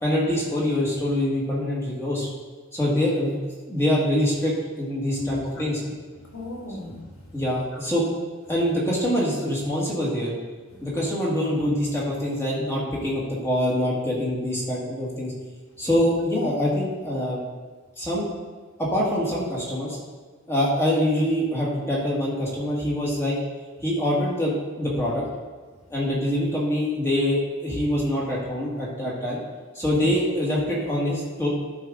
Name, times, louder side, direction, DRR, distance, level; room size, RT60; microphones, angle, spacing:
voice 1, 0.0-2.3 2.7-3.4 3.7-5.8 7.3-8.1 8.5-10.3 10.8-15.3 15.8-17.4 18.0-18.3 18.8-20.0 20.5-23.4 23.8-25.2 25.9-29.4 29.7-31.5, equal, 10° left, -6 dB, 1.9 m, -24 dB
voice 2, 5.1-5.7 6.2-7.4 10.7-10.9 30.0-30.1, left 2 dB, 80° left, 0 dB, 1.6 m, -36 dB
12.0 x 4.7 x 3.8 m, 1.4 s
head